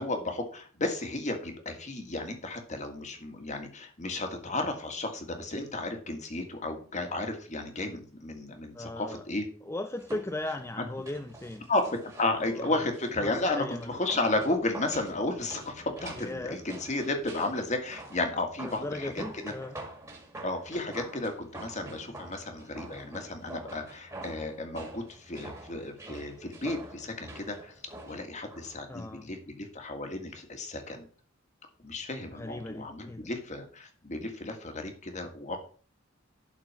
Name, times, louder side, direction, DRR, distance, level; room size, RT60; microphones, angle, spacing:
voice 1, 0.0-9.4 11.7-19.5 20.4-27.7 28.1-31.1 31.8-35.6, left 2 dB, 35° left, 5 dB, 1.8 m, -33 dB
voice 2, 8.7-9.2 9.6-11.7 12.4-12.9 13.2-13.9 16.1-16.6 18.6-19.8 28.9-29.3 32.3-33.3, left 1 dB, 15° left, 5 dB, 0.5 m, -37 dB
sound 1, 10.0-28.8 29.1-29.2, right 2 dB, 15° right, 2.3 m, -46 dB
11.5 x 4.5 x 6.0 m, 0.43 s
head